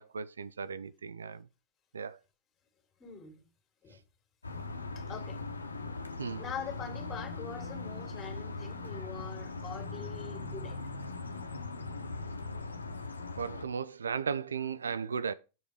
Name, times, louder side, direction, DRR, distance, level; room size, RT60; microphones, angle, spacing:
voice 1, 0.0-1.5 1.9-2.2 6.2-6.4 13.4-15.3, right 6 dB, 70° right, 0.4 m, -36 dB
voice 2, 3.0-3.4 3.8-4.0 5.0-5.4 6.4-10.8, left 6 dB, 25° left, 2.2 m, -43 dB
sound 1, 4.4-13.6, left 3 dB, 75° left, 0.8 m, -40 dB
7.8 x 4.9 x 4.8 m
figure-of-eight pair, 90°, 0 cm